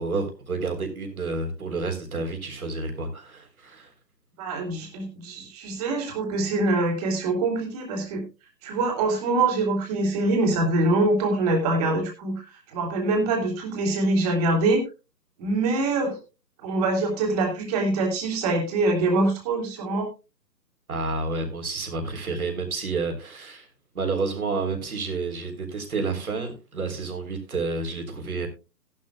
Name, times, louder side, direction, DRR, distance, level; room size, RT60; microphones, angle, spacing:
voice 1, 0.0-3.9 20.9-23.7 23.9-28.5, right 3 dB, 55° right, 4 dB, 3.7 m, -30 dB
voice 2, 4.4-8.2 8.6-14.8 15.4-16.2 16.6-20.1, right 2 dB, 25° right, 2 dB, 2.9 m, -24 dB
16.0 x 11.5 x 2.3 m, 0.27 s
figure-of-eight pair, 135°, 50 cm